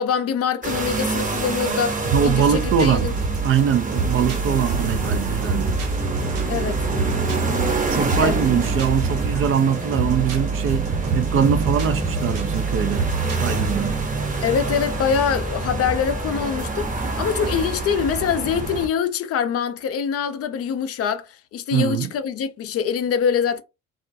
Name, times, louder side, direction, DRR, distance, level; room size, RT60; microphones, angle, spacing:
voice 1, 0.0-3.1 6.5-6.8 8.2-8.4 14.4-23.6, left 7 dB, 45° left, 0.5 m, -24 dB
sound 1, 0.6-18.9, right 3 dB, 25° right, 0.9 m, -27 dB
sound 2, 2.0-14.0, right 4 dB, 70° right, 1.0 m, -26 dB
voice 2, 2.1-3.1 3.4-5.8 7.9-13.1 13.4-14.0 21.7-22.1, right 8 dB, 40° right, 0.4 m, -22 dB
2.4 x 2.1 x 2.6 m
hypercardioid pair, 60°, 33 cm